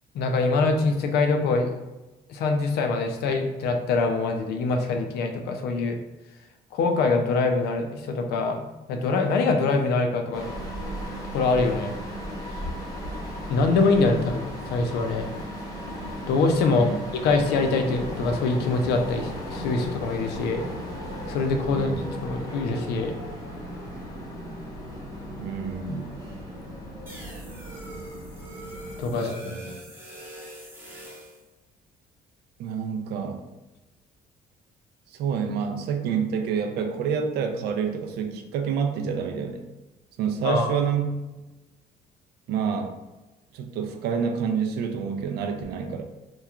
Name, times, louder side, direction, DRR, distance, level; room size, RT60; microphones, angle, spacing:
voice 1, 0.1-1.7 2.3-6.0 6.7-10.5 11.3-11.9 13.5-14.3 14.7-15.3 16.3-16.9 17.2-20.6 21.3-21.9 22.2-23.2 29.0-29.5 40.4-40.8, left 3 dB, 75° left, 5 dB, 0.4 m, -24 dB
sound 1, 10.3-29.1, equal, 20° left, 0.8 m, -36 dB
voice 2, 25.4-26.1 29.1-29.7 32.6-33.4 35.2-39.7 40.2-41.1 42.5-42.9 43.5-46.0, right 7 dB, 75° right, 5 dB, 0.4 m, -28 dB
sound 2, 27.1-31.4, right 1 dB, 15° right, 0.8 m, -43 dB
2.9 x 2.3 x 2.3 m, 1.1 s
cardioid pair, 110°, 17 cm